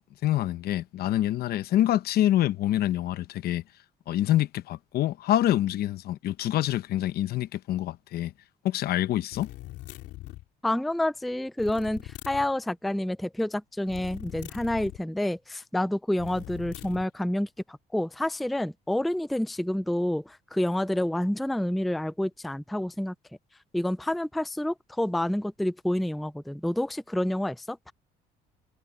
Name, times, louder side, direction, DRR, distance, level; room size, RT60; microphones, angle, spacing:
voice 1, 0.2-3.6 4.1-8.3 8.6-9.5, left 13 dB, 65° left, 0.9 m, -26 dB
sound 1, 9.3-10.5 11.6-12.5 13.9-15.0 16.2-17.1, left 16 dB, 85° left, 3.0 m, -41 dB
voice 2, 10.6-23.1 23.7-27.9, left 1 dB, ahead, 0.4 m, -28 dB
cardioid pair, 110°, 17 cm